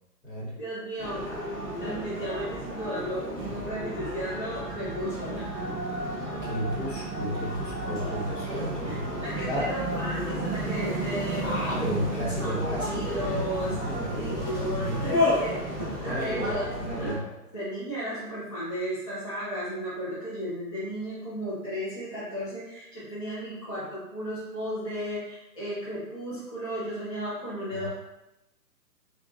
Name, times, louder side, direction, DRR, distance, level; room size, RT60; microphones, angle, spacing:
voice 1, 0.5-1.3 1.7-6.0 8.8-11.4 12.4-12.5 12.8-13.7 14.1-15.6 16.0-16.7 17.0-17.1 17.5-27.9, equal, 25° left, -13 dB, 0.6 m, -34 dB
sound 1, 1.0-17.2, equal, 5° left, 1.2 m, -32 dB
voice 2, 6.4-9.0 9.4-9.7 11.4-15.0 16.0-17.2 27.7-27.9, equal, 50° left, -6 dB, 1.4 m, -33 dB
3.2 x 2.4 x 2.5 m, 0.90 s
hypercardioid pair, 160°, 48 cm